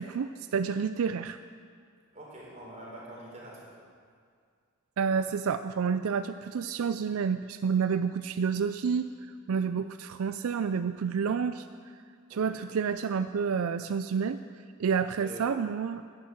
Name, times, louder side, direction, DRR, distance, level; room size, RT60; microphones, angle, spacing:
voice 1, 0.0-1.4 5.0-9.1 9.5-11.7 12.3-14.4 14.8-16.0, right 6 dB, 80° right, 11 dB, 0.4 m, -29 dB
voice 2, 2.1-3.7 12.3-12.5 15.2-15.5, right 1 dB, 35° right, -4 dB, 4.2 m, -45 dB
12.0 x 10.5 x 7.8 m, 2.1 s
head